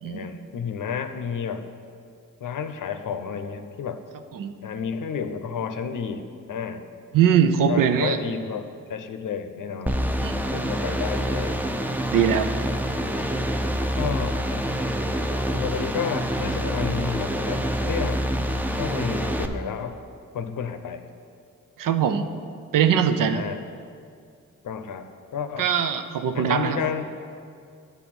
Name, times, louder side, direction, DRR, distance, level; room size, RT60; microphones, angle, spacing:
voice 1, 0.0-1.7 2.4-4.0 4.6-6.8 7.7-10.0 10.5-11.6 12.5-12.8 14.0-14.4 15.5-18.3 18.7-20.0 20.3-21.0 23.2-23.6 24.6-25.7 26.3-27.1, left 6 dB, 70° left, 8 dB, 0.7 m, -31 dB
voice 2, 7.1-8.2 10.2-10.5 12.1-12.5 21.8-22.3 22.7-23.4 25.6-26.8, right 8 dB, 75° right, 8 dB, 0.6 m, -21 dB
sound 1, 9.9-19.5, equal, 5° right, 0.6 m, -26 dB
10.0 x 4.1 x 6.0 m, 2.3 s
supercardioid pair, 40°, 33 cm